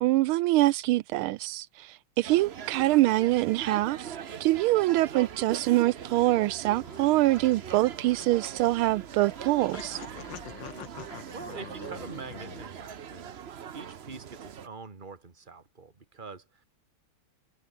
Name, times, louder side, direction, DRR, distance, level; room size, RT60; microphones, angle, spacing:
voice 1, 0.0-10.0, right 17 dB, 85° right, 1.4 m, -25 dB
sound 1, 2.2-14.7, right 8 dB, 60° right, 0.6 m, -41 dB
sound 2, 6.4-12.7, left 8 dB, 60° left, 2.2 m, -46 dB
voice 2, 10.1-10.5 10.8-13.4 13.7-16.6, right 4 dB, 25° right, 2.1 m, -45 dB
omnidirectional pair, 2.3 m